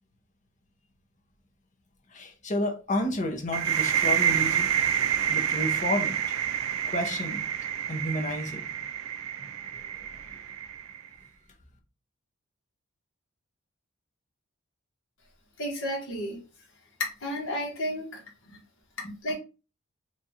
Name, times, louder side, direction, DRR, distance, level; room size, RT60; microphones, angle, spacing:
voice 1, 2.1-4.7 5.3-6.4 6.9-7.4 7.9-8.7 9.4-9.8 10.1-10.2, left 1 dB, 35° left, 0.8 m, -31 dB
sound 1, 3.5-11.1, right 9 dB, 85° right, 0.4 m, -28 dB
voice 2, 15.6-16.4 17.2-18.2 18.5-18.6 19.0-19.4, equal, 70° left, 1.4 m, -32 dB
3.1 x 2.4 x 4.1 m
head